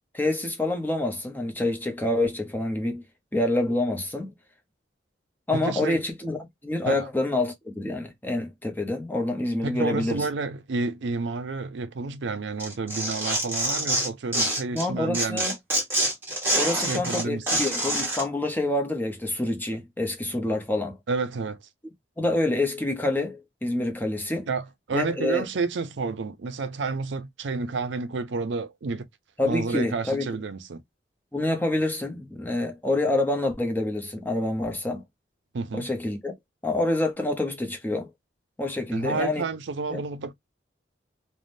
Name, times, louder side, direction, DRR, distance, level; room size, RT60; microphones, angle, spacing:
voice 1, 0.1-3.0 3.3-4.3 5.5-10.3 14.7-15.5 16.5-21.0 22.2-24.5 24.9-25.5 29.4-30.3 31.3-35.0 35.7-36.3 36.6-38.1 38.6-39.5 39.9-40.0, left 2 dB, 10° left, 0.6 m, -27 dB
voice 2, 5.5-6.0 6.8-7.1 9.6-15.4 16.7-17.4 21.1-21.6 24.5-29.1 29.4-30.8 35.5-35.9 38.9-40.3, right 4 dB, 70° right, 0.5 m, -30 dB
Tearing, 12.6-14.8 15.1-18.2, right 1 dB, 10° right, 1.4 m, -26 dB
3.4 x 2.1 x 2.5 m
head